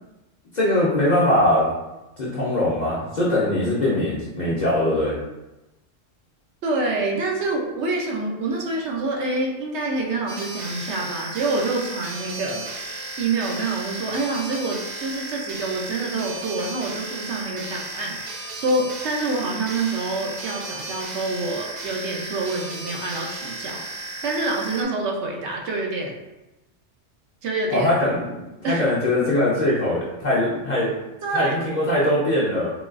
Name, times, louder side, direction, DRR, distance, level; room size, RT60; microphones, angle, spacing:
voice 1, 0.5-1.7 2.2-5.2 27.7-30.9 31.3-32.7, left 1 dB, 45° left, -7 dB, 0.6 m, -21 dB
voice 2, 6.6-26.2 27.4-27.9 28.6-28.9 31.2-31.6, right 2 dB, 70° right, -1 dB, 0.8 m, -27 dB
sound 1, 10.3-24.8, right 2 dB, 85° right, 0.3 m, -34 dB
3.8 x 2.3 x 2.4 m, 1.0 s
omnidirectional pair, 1.3 m